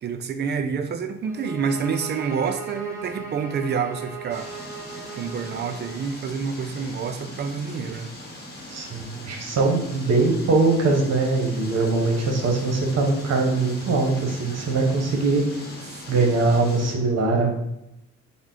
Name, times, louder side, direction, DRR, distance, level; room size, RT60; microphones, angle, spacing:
voice 1, 0.0-4.5 5.2-8.1 16.1-16.3, right 6 dB, 35° right, 8 dB, 0.4 m, -28 dB
sound 1, 1.2-6.1, right 4 dB, 10° right, 0.8 m, -38 dB
sound 2, 4.3-16.9, left 1 dB, 35° left, 1.0 m, -40 dB
voice 2, 8.7-15.4 16.1-17.7, right 3 dB, 55° right, 2 dB, 0.8 m, -22 dB
3.5 x 2.1 x 3.6 m, 0.84 s
cardioid pair, 90°, 30 cm